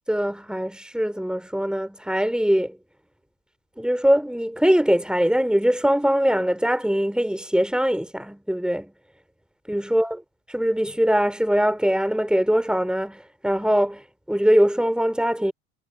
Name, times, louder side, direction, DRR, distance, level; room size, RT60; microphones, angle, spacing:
voice 1, 0.1-2.8 3.8-8.9 9.7-10.2 10.5-15.5, equal, ahead, 4.8 m, -22 dB
figure-of-eight pair, 75°, 43 cm